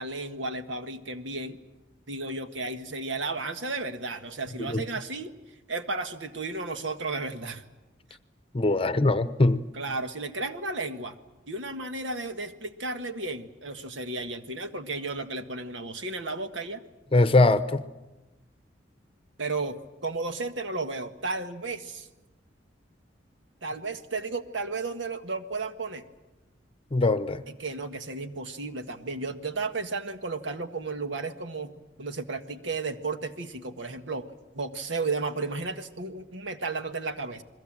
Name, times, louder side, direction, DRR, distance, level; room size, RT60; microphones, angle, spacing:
voice 1, 0.0-1.6 2.1-5.4 5.7-7.6 9.7-11.2 11.5-16.8 19.4-22.1 23.6-26.0 27.5-37.4, right 3 dB, 80° right, 8 dB, 1.6 m, -33 dB
voice 2, 8.5-9.6 17.1-17.8 26.9-27.4, left 2 dB, 30° left, 13 dB, 0.8 m, -21 dB
29.5 x 21.5 x 7.5 m, 1.1 s
head